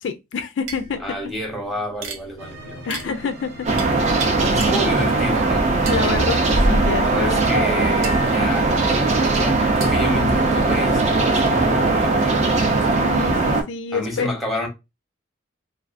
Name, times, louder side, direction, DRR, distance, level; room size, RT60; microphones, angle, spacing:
voice 1, 0.0-1.0 2.9-3.7 5.9-7.4 12.8-14.3, left 5 dB, 65° left, 0.3 m, -27 dB
sound 1, 0.6-5.4 5.9-12.4, right 3 dB, 90° right, 0.6 m, -36 dB
voice 2, 1.0-2.9 4.4-5.7 7.0-8.8 9.4-12.5 13.9-14.7, left 1 dB, ahead, 0.8 m, -29 dB
sound 2, 2.4-11.9, right 1 dB, 55° right, 0.8 m, -40 dB
sound 3, 3.7-13.6, right 3 dB, 35° right, 0.4 m, -19 dB
2.4 x 2.4 x 2.4 m
head